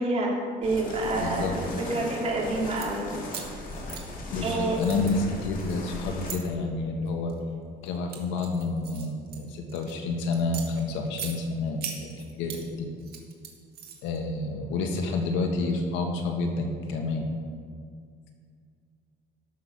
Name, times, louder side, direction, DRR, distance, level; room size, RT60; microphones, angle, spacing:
voice 1, 0.0-3.1 4.4-4.8, right 2 dB, 35° right, -2 dB, 2.7 m, -28 dB
sound 1, 0.6-6.3, left 2 dB, 45° left, 2.3 m, -37 dB
voice 2, 1.1-1.6 4.3-7.3 7.8-12.9 14.0-17.3, left 3 dB, 90° left, 3 dB, 1.7 m, -29 dB
sound 2, 2.6-2.9 3.3-4.5 4.8-6.4 7.1-7.4 7.9-9.9 10.3-11.3 11.8-12.6 13.0-14.2, right 8 dB, 55° right, 1.9 m, -40 dB
13.0 x 6.5 x 6.0 m, 2.1 s
cardioid pair, 135°, 19 cm